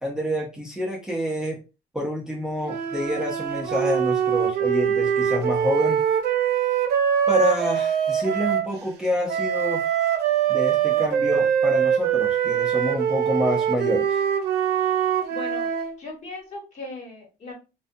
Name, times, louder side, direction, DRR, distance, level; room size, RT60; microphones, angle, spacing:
voice 1, 0.0-1.6 1.9-6.0 7.3-9.9 10.5-14.2, left 1 dB, 5° right, -3 dB, 0.6 m, -27 dB
sound 1, 2.6-8.7 9.3-15.9, right 8 dB, 75° right, 0.6 m, -23 dB
voice 2, 15.3-15.6 16.0-17.5, left 2 dB, 45° left, 0 dB, 1.2 m, -37 dB
2.5 x 2.2 x 2.6 m, 0.29 s
cardioid pair, 110°, 17 cm